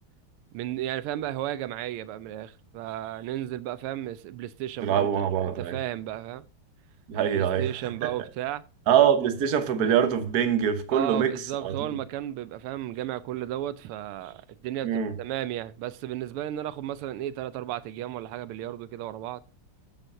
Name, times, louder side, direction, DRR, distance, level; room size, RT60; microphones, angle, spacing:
voice 1, 0.5-5.1 5.4-6.4 7.3-8.6 10.9-19.4, right 13 dB, 85° right, 1.5 m, -34 dB
voice 2, 4.8-5.8 7.1-7.7 8.0-8.1 8.9-11.3 11.6-11.8 14.8-15.1, right 9 dB, 50° right, 1.4 m, -24 dB
13.0 x 7.8 x 2.6 m
omnidirectional pair, 2.4 m